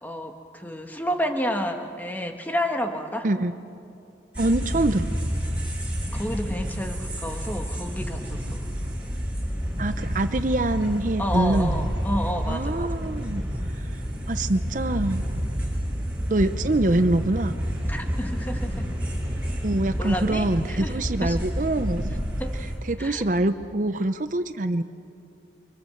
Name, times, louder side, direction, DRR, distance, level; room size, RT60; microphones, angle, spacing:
voice 1, 0.0-3.3 6.1-8.6 11.2-13.1 17.9-18.9 20.0-21.4 22.4-22.6 23.0-23.2, equal, 10° left, 4 dB, 1.7 m, -30 dB
sound 1, 4.3-22.8, equal, 5° right, 6.3 m, -29 dB
voice 2, 4.4-5.1 9.8-11.9 12.5-13.4 13.7-13.9 14.3-15.3 16.3-17.5 19.6-22.1 22.8-24.8, right 2 dB, 45° right, 10 dB, 0.7 m, -24 dB
30.0 x 24.5 x 7.8 m, 2.6 s
head